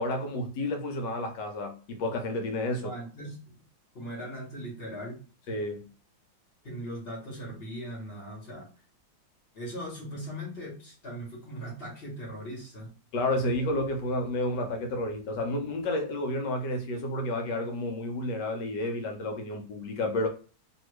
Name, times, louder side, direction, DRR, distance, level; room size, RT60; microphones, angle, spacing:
voice 1, 0.0-2.9 5.5-5.9 13.1-20.3, left 1 dB, 70° left, 1.3 m, -31 dB
voice 2, 2.7-3.5 3.9-5.2 6.6-8.7 9.5-12.9, equal, 35° left, 1.2 m, -39 dB
2.9 x 2.7 x 3.2 m
omnidirectional pair, 2.0 m